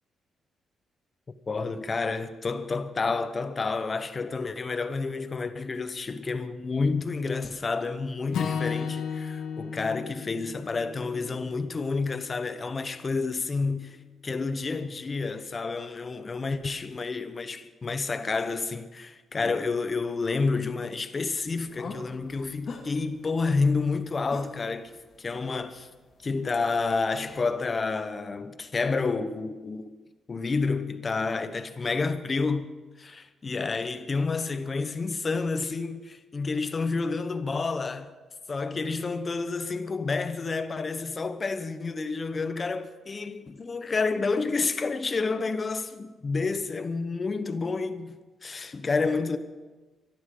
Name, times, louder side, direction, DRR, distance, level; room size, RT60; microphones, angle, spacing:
voice 1, 1.5-14.0 14.2-25.9 26.2-29.9 30.3-32.7 33.0-38.1 38.5-48.2 48.4-49.4, left 4 dB, 35° left, 1.1 m, -29 dB
Acoustic guitar / Strum, 8.3-12.6, left 6 dB, 85° left, 1.6 m, -34 dB
sound 1, 21.2-27.5, left 4 dB, 55° left, 2.3 m, -45 dB
24.0 x 12.0 x 3.9 m
cardioid pair, 100°, 0 cm